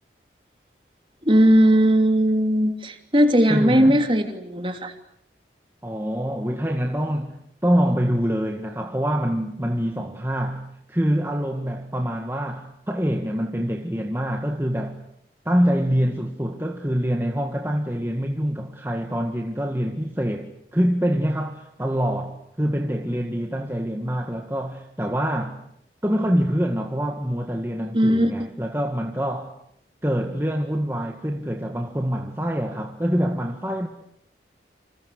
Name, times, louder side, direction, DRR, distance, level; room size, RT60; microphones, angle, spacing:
voice 1, 1.2-4.9 27.9-28.3, equal, 30° right, 2.9 m, -18 dB
voice 2, 3.5-4.0 5.8-15.0 15.4-25.6 26.0-29.5 30.0-33.9, equal, 15° right, 1.8 m, -25 dB
28.5 x 27.5 x 6.5 m
head